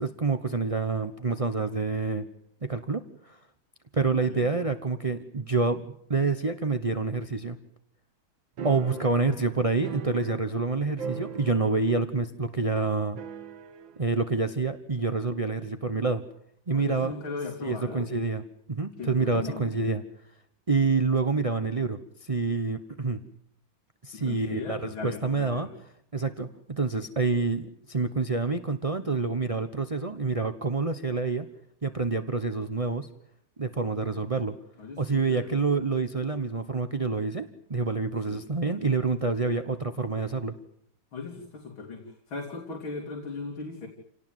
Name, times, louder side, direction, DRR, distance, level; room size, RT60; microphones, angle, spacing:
voice 1, 0.0-2.3 2.6-3.4 3.9-7.6 8.6-13.2 14.0-16.2 16.7-17.1 17.6-18.4 18.7-20.0 20.7-23.2 24.0-25.7 26.1-31.5 31.8-33.1 33.6-34.5 35.0-40.6, right 3 dB, 30° right, 9 dB, 0.7 m, -27 dB
voice 2, 4.1-4.5 16.7-18.1 19.0-19.7 24.1-25.7 34.8-35.5 38.3-38.4 41.1-43.9, left 4 dB, 70° left, 2 dB, 3.8 m, -38 dB
sound 1, 8.6-10.7 11.0-12.0 12.2-12.3 13.2-14.0, right 6 dB, 65° right, 2.2 m, -39 dB
28.5 x 18.5 x 9.3 m, 0.72 s
omnidirectional pair, 2.3 m